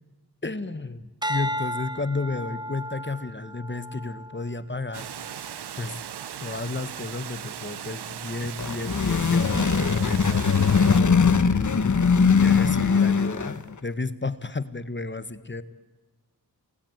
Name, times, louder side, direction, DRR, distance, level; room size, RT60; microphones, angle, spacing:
voice 1, 0.4-5.1 5.8-6.0 6.4-10.9 11.5-15.6, left 3 dB, 30° left, 13 dB, 1.7 m, -33 dB
sound 1, 1.2-5.7 6.2-6.6, equal, 10° right, 1.2 m, -35 dB
Water, 4.9-11.0, right 9 dB, 80° right, 1.0 m, -38 dB
sound 2, 8.4-13.7, left 5 dB, 50° left, 1.5 m, -21 dB
29.0 x 21.5 x 9.6 m, 1.2 s
cardioid pair, 50°, 39 cm